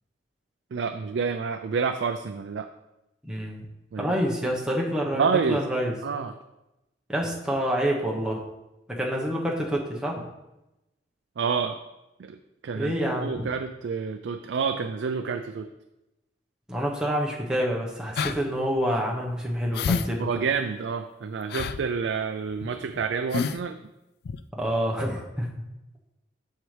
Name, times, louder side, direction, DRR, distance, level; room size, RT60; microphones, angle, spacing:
voice 1, 0.7-2.7 3.9-4.1 5.1-5.6 6.0-6.4 11.4-11.8 12.2-12.4 12.6-12.9 13.2-15.7 20.2-23.8, right 5 dB, 75° right, 7 dB, 0.4 m, -28 dB
voice 2, 3.2-3.6 4.0-5.9 7.1-8.4 8.9-10.2 12.7-13.5 16.7-20.3 24.6-25.5, equal, 5° right, -2 dB, 1.0 m, -27 dB
sound 1, 18.2-18.4 18.8-18.9 19.7-20.1 20.4-20.5 21.5-21.8 22.5-22.7 23.0-23.1 23.3-23.6 24.2-24.4, left 5 dB, 55° left, 0.3 m, -28 dB
7.6 x 6.5 x 3.3 m, 0.94 s
head